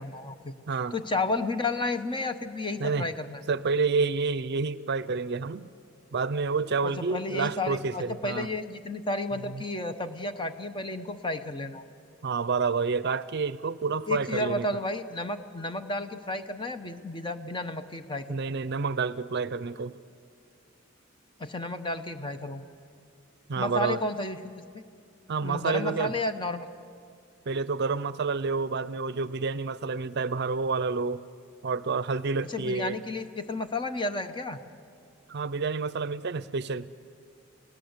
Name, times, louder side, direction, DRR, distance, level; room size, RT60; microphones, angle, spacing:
voice 1, 0.0-0.5 0.9-3.4 6.8-11.8 14.1-18.4 21.4-22.6 23.6-24.8 25.4-26.7 32.5-34.6, left 2 dB, 25° left, 8 dB, 1.0 m, -32 dB
voice 2, 0.7-1.0 2.8-3.1 3.5-5.7 6.1-8.5 9.5-9.6 12.2-14.7 18.3-20.0 23.5-24.0 25.3-26.1 27.5-31.2 31.6-33.0 35.3-36.9, right 4 dB, 55° right, 16 dB, 0.6 m, -29 dB
29.0 x 17.5 x 8.1 m, 2.3 s
head